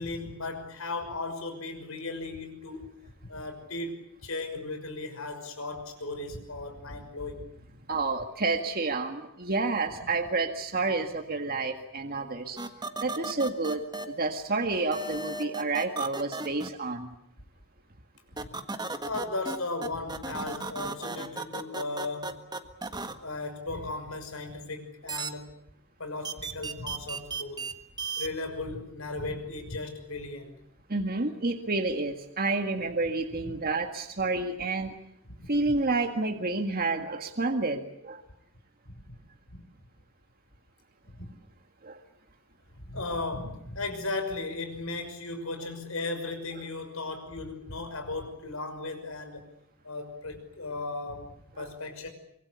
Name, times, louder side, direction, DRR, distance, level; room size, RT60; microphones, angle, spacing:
voice 1, 0.0-2.9 3.3-7.5 18.4-18.5 19.0-22.4 23.2-25.6 26.0-27.7 28.2-30.6 33.4-33.5 35.3-35.5 39.1-39.2 39.5-39.6 41.2-41.3 42.8-49.4 49.8-52.1, left 2 dB, 80° left, 7 dB, 6.0 m, -36 dB
voice 2, 7.9-12.6 13.0-17.1 30.9-34.9 35.5-38.2 41.8-42.0 51.6-51.7, right 3 dB, 45° right, 5 dB, 1.8 m, -29 dB
sound 1, 12.6-14.0 14.9-16.7 18.4-19.6 19.8-23.1 25.1-25.3 26.2-27.7 28.0-28.3, right 3 dB, 20° right, 1.6 m, -35 dB
25.0 x 24.0 x 8.3 m, 0.74 s
head